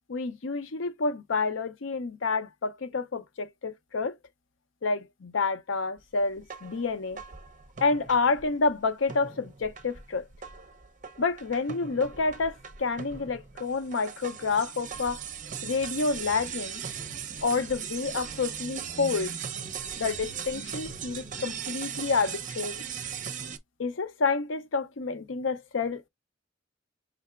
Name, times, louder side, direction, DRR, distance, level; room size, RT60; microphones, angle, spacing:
voice 1, 0.1-4.1 4.8-7.2 7.8-10.3 11.2-15.2 15.6-16.8 17.4-19.3 20.0-22.8 23.8-26.1, left 4 dB, 80° left, 0.6 m, -29 dB
sound 1, 6.4-8.7 9.1-23.6, right 7 dB, 40° right, 0.6 m, -39 dB
5.7 x 3.3 x 2.4 m
head